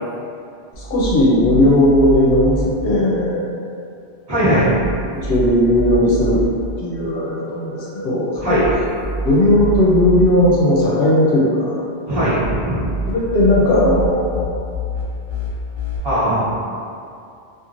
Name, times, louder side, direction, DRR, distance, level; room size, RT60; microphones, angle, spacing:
sound 1, 0.7-2.6 4.5-6.5 8.3-10.3 12.2-16.0, right 1 dB, 45° left, 0.3 m, -27 dB
voice 1, 0.8-3.5 5.2-6.4 6.8-8.6 9.2-11.8 13.1-14.5, left 1 dB, 70° left, -5 dB, 0.8 m, -16 dB
voice 2, 4.3-4.7 8.4-8.7 12.1-12.8 16.0-16.4, equal, 25° right, -14 dB, 0.9 m, -18 dB
2.9 x 2.5 x 2.4 m, 2.5 s
omnidirectional pair, 1.1 m